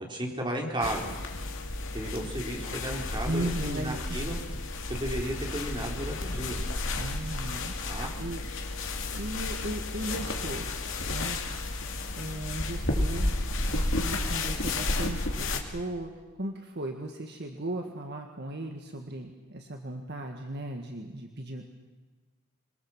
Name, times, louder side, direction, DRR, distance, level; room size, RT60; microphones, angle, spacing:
voice 1, 0.1-1.1 1.9-4.4 4.9-6.6 7.9-8.1, right 1 dB, 20° right, 0 dB, 4.1 m, -34 dB
sound 1, 0.8-15.6, left 2 dB, 60° left, 2.7 m, -32 dB
voice 2, 3.2-4.2 7.0-8.4 9.1-10.7 11.1-11.4 12.2-13.3 13.7-16.1 16.4-21.6, right 1 dB, 45° right, 3 dB, 1.7 m, -37 dB
26.0 x 22.5 x 7.4 m, 1.4 s
head